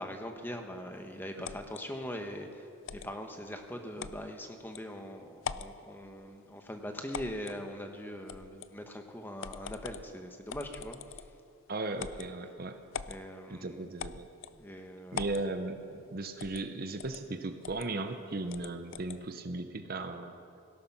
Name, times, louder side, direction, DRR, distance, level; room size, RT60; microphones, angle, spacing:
voice 1, 0.0-11.2 13.1-13.9 14.5-15.3, equal, 10° left, 4 dB, 1.0 m, -42 dB
sound 1, 1.4-1.8 2.9-3.1 4.0-4.2 4.7-4.8 5.4-5.8 7.1-7.6 8.3-8.7 9.4-10.1 10.5-11.4 12.0-12.3 12.9-13.2 14.0-14.6 15.1-15.5 16.4-16.7 17.0-17.2 17.6-17.9 18.5-19.2, left 7 dB, 60° left, 0.4 m, -41 dB
voice 2, 11.7-12.8 13.5-14.3 15.1-20.3, right 2 dB, 45° right, 8 dB, 0.7 m, -37 dB
17.5 x 11.5 x 5.9 m, 2.4 s
head